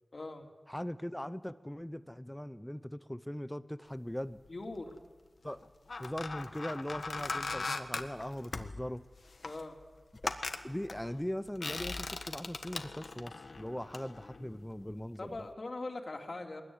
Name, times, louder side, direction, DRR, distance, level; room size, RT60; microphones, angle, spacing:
voice 1, 0.1-0.5 4.5-5.0 9.4-9.8 15.2-16.6, left 2 dB, 55° left, 3 dB, 3.1 m, -41 dB
voice 2, 0.7-4.4 5.4-5.7 6.0-9.0 10.2-15.4, equal, 10° left, 14 dB, 0.8 m, -40 dB
sound 1, 4.4-5.0 5.6-15.1 15.3-15.5, left 3 dB, 75° left, 1.7 m, -40 dB
23.0 x 21.0 x 9.7 m, 1.4 s
wide cardioid pair, 70°, 0 cm